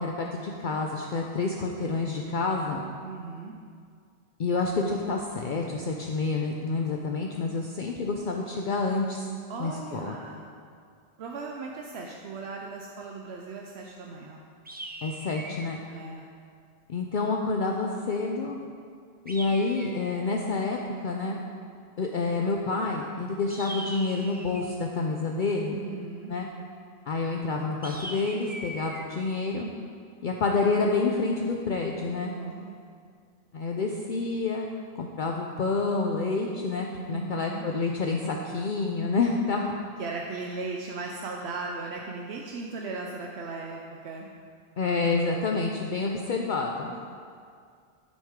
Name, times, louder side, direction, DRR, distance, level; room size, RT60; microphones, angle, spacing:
voice 1, 0.0-2.8 4.4-9.2 9.6-10.2 15.0-15.8 16.9-18.6 19.3-21.4 22.0-25.8 26.3-26.5 27.1-29.7 30.2-32.3 33.5-39.7 44.8-46.9, left 3 dB, 55° left, 1 dB, 0.7 m, -28 dB
voice 2, 3.0-3.5 9.5-10.5 11.2-14.4 15.9-16.3 25.8-26.3 32.3-32.8 37.1-37.7 40.0-44.3, right 3 dB, 80° right, 1 dB, 0.9 m, -37 dB
sound 1, 14.7-15.8 19.3-20.3 23.5-24.8 27.8-29.1, right 1 dB, 15° right, 0.4 m, -40 dB
14.0 x 6.3 x 3.7 m, 2.2 s
omnidirectional pair, 1.1 m